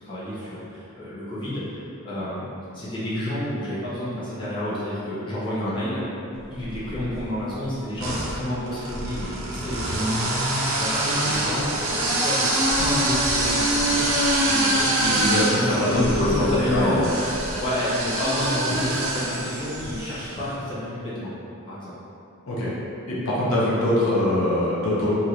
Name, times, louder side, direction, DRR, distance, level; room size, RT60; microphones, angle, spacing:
voice 1, 0.0-2.5 2.7-6.0 6.5-17.0 17.6-21.3 21.6-21.9, left 1 dB, 20° left, -11 dB, 0.7 m, -30 dB
sound 1, 6.6-7.3 8.0-20.3, right 1 dB, 70° right, 0.5 m, -25 dB
voice 2, 15.0-17.1 22.5-22.7 23.1-25.1, left 1 dB, 70° left, -8 dB, 0.7 m, -23 dB
3.0 x 2.7 x 2.4 m, 2.8 s
head